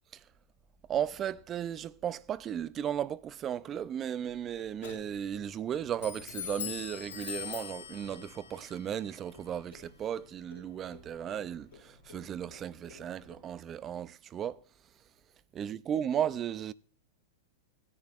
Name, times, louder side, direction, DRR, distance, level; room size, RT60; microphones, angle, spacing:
voice 1, 0.9-14.6 15.5-16.7, right 9 dB, 30° right, 0.4 m, -35 dB
Clock, 4.2-13.5, left 9 dB, 85° left, 2.7 m, -46 dB
17.0 x 10.5 x 2.4 m
hypercardioid pair, 115°, 0 cm